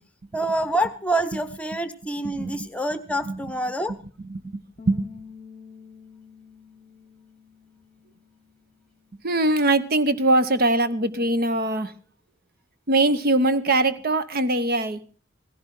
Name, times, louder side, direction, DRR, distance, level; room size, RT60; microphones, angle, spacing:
voice 1, 0.3-4.0, right 1 dB, 5° left, 11 dB, 0.9 m, -26 dB
voice 2, 2.2-2.7 3.2-3.4 4.2-5.1 9.2-11.9 12.9-15.0, right 2 dB, 50° right, 12 dB, 0.8 m, -22 dB
Bass guitar, 4.8-11.0, left 6 dB, 35° left, 0.7 m, -49 dB
16.5 x 16.0 x 3.8 m, 0.40 s
head